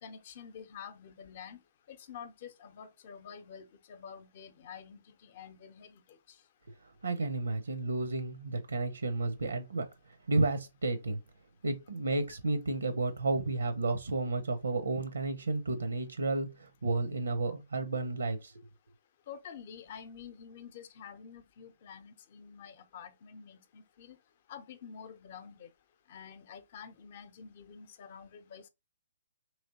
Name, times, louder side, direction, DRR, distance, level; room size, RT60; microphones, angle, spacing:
voice 1, 0.0-1.6 1.9-6.0 19.3-24.2 24.5-25.7 26.1-28.7, left 7 dB, 45° left, 0.6 m, -48 dB
voice 2, 7.0-9.9 10.3-11.2 11.6-18.7, right 3 dB, 80° right, 0.6 m, -32 dB
3.1 x 2.9 x 2.7 m
figure-of-eight pair, 130°, 0 cm